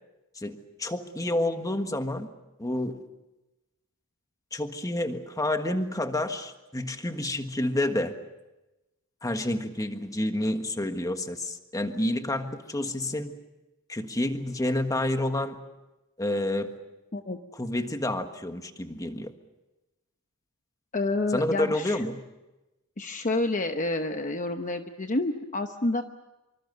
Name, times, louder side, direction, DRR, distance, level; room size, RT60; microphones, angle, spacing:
voice 1, 0.3-2.3 2.6-3.0 4.5-8.1 9.2-13.3 13.9-15.6 16.2-16.7 17.6-19.3 21.3-22.2, left 1 dB, 15° left, 7 dB, 1.5 m, -29 dB
voice 2, 20.9-22.0 23.0-26.0, left 2 dB, 35° left, 7 dB, 0.9 m, -29 dB
26.0 x 25.0 x 6.7 m, 1.0 s
head